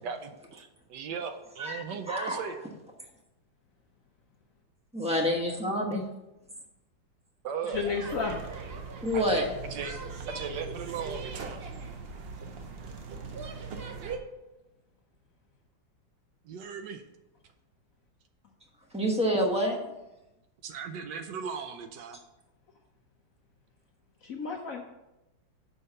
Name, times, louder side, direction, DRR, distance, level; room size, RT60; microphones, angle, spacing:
voice 1, 0.0-2.7 7.4-7.9 9.1-9.9 10.3-11.7 16.4-17.0 20.6-22.2, right 6 dB, 70° right, 8 dB, 1.2 m, -37 dB
voice 2, 1.6-2.4 4.9-6.0 9.0-9.5 18.9-19.8, equal, 5° right, 0 dB, 0.7 m, -27 dB
voice 3, 7.7-8.4 24.2-24.8, left 4 dB, 60° left, 2 dB, 0.9 m, -31 dB
sound 1, 7.7-14.2, right 4 dB, 90° right, 0.5 m, -40 dB
6.5 x 4.5 x 6.4 m, 0.95 s
omnidirectional pair, 2.1 m